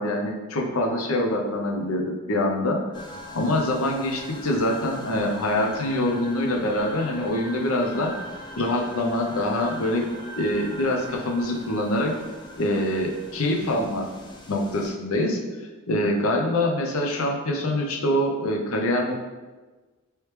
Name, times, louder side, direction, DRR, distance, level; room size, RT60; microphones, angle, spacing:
voice 1, 0.0-2.8 3.3-8.1 8.6-10.1 10.3-12.1 12.6-14.1 14.5-15.4 15.9-19.1, left 1 dB, 80° left, 1 dB, 0.6 m, -25 dB
sound 1, 2.9-14.9, equal, 20° left, 0.4 m, -41 dB
3.2 x 3.1 x 3.1 m, 1.2 s
head